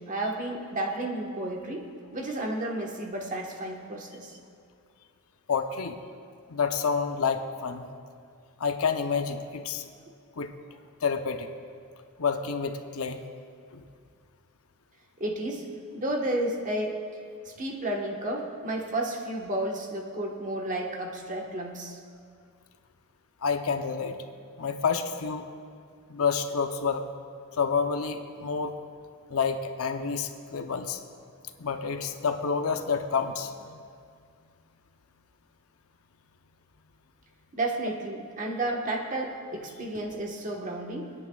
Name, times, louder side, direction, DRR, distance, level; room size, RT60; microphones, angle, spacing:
voice 1, 0.0-4.4 15.2-15.7 15.9-17.0 17.4-22.0 37.5-41.1, right 1 dB, 35° right, 0 dB, 1.3 m, -32 dB
voice 2, 5.5-6.0 6.5-7.9 8.6-9.8 10.4-10.5 11.0-11.5 12.2-13.2 13.7-13.8 23.4-24.2 24.6-25.5 26.1-27.1 27.6-28.8 29.3-31.0 31.6-33.8, left 5 dB, 70° left, 7 dB, 0.7 m, -29 dB
28.0 x 9.6 x 2.4 m, 2.2 s
head